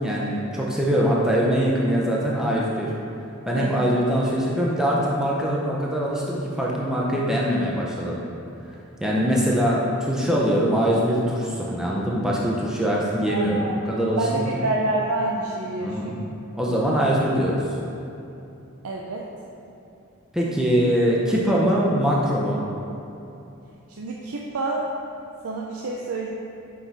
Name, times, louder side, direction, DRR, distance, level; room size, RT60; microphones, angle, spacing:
voice 1, 0.0-2.9 3.5-8.2 9.0-14.6 15.8-16.2 16.5-17.6 20.3-22.6, equal, 5° right, -5 dB, 0.5 m, -23 dB
voice 2, 3.6-4.0 13.3-13.8 14.2-16.3 18.8-19.3 23.9-25.0 25.4-26.3, right 2 dB, 85° right, -1 dB, 0.5 m, -28 dB
6.1 x 4.5 x 4.0 m, 2.8 s
head